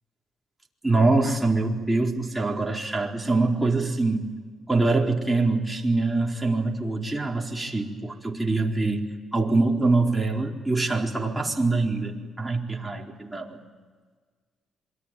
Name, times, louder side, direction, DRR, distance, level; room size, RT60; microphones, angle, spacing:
voice 1, 0.8-4.3 4.7-13.6, right 3 dB, 10° right, 0 dB, 4.3 m, -24 dB
27.0 x 23.0 x 9.2 m, 1.5 s
cardioid pair, 90°, 0 cm